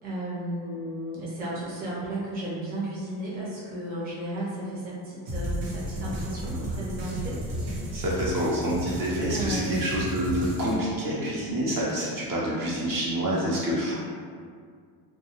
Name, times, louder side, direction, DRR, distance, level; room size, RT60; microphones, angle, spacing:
voice 1, 0.0-7.4 7.8-8.0 9.3-9.9, right 1 dB, 20° right, -8 dB, 0.7 m, -34 dB
sound 1, 5.3-10.8, right 1 dB, 80° right, 0.9 m, -33 dB
voice 2, 7.9-13.9, equal, 45° right, -6 dB, 0.8 m, -27 dB
2.3 x 2.3 x 2.9 m, 2.1 s
cardioid pair, 110°, 47 cm